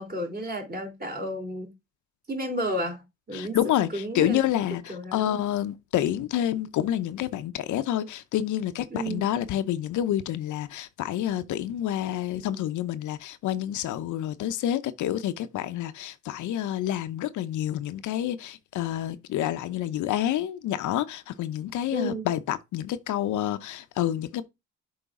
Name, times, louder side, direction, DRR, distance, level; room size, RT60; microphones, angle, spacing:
voice 1, 0.0-1.7 2.3-3.6 3.9-4.4 4.9-5.4 8.9-9.3 21.9-22.3, equal, 30° right, 2.8 m, -32 dB
voice 2, 3.3-24.4, left 12 dB, 75° left, 0.7 m, -28 dB
7.0 x 4.7 x 3.6 m
cardioid pair, 90°, 30 cm